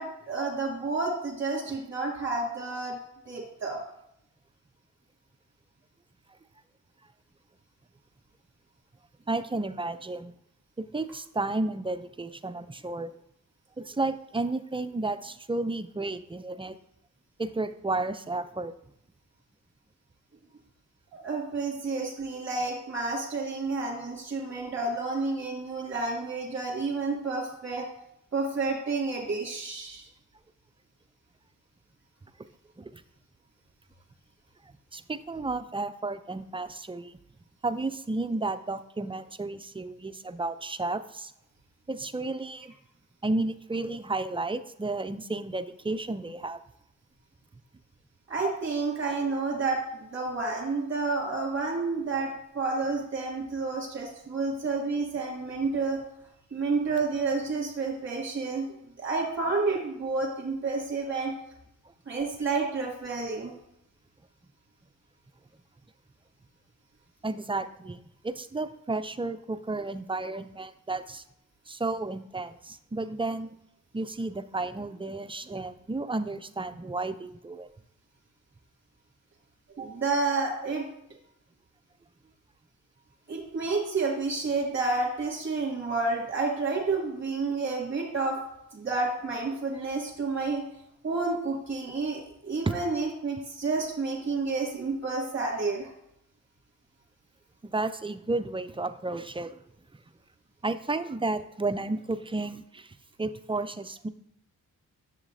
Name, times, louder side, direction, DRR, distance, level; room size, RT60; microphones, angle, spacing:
voice 1, 0.0-3.0 3.3-3.8 21.2-27.9 28.3-30.1 48.3-56.0 56.5-58.7 59.0-61.3 62.1-63.5 79.8-80.8 83.3-88.4 88.7-90.6 91.0-95.9, right 3 dB, 35° right, -2 dB, 2.5 m, -30 dB
voice 2, 9.3-10.3 10.8-13.1 13.8-16.8 17.4-18.7 32.8-32.9 34.6-37.2 37.6-41.3 41.9-42.7 43.2-46.6 67.2-71.2 71.7-73.5 73.9-77.7 92.7-92.8 97.6-99.5 100.6-104.1, right 2 dB, 15° right, 11 dB, 0.5 m, -32 dB
7.2 x 7.1 x 2.7 m, 0.77 s
supercardioid pair, 55°, 36 cm